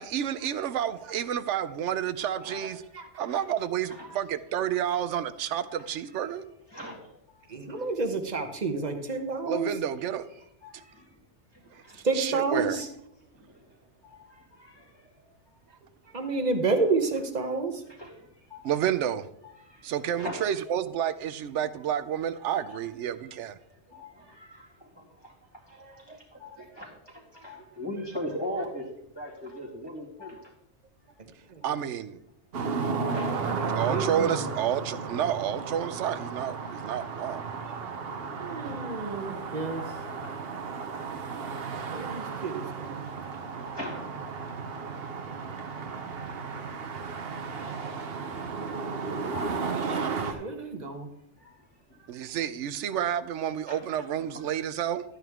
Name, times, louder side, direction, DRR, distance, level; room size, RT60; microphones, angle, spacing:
voice 1, 0.0-2.8 3.2-6.4 9.4-10.2 11.9-12.8 18.6-19.3 19.8-23.6 31.6-32.2 33.7-37.4 52.1-55.0, right 9 dB, 80° right, 0.9 m, -30 dB
voice 2, 2.2-2.9 3.3-3.4 3.9-4.1 5.6-6.4 6.7-7.8 9.4-9.6 10.3-11.0 11.5-12.1 13.4-13.6 14.0-15.3 16.2-16.4 17.8-18.7 19.4-20.5 21.8-21.9 22.5-23.4 23.6-30.5 31.6-31.7 32.6-33.4 36.6-37.2 37.5-37.6 39.4-42.1 42.6-42.8 43.0-44.1 45.2-45.8 47.2-50.4 51.1-52.4 52.9-53.0 53.7-54.8, left 1 dB, 20° left, 2.1 m, -43 dB
voice 3, 7.5-9.7 12.0-12.9 16.1-17.8 25.8-26.2 27.4-27.5 31.5-31.7 33.6-34.5 37.6-37.7 38.4-39.9 41.9-43.1 50.3-51.1, right 3 dB, 40° right, 1.1 m, -30 dB
sound 1, 32.5-50.3, right 5 dB, 60° right, 1.0 m, -34 dB
12.5 x 9.2 x 3.6 m
omnidirectional pair, 1.2 m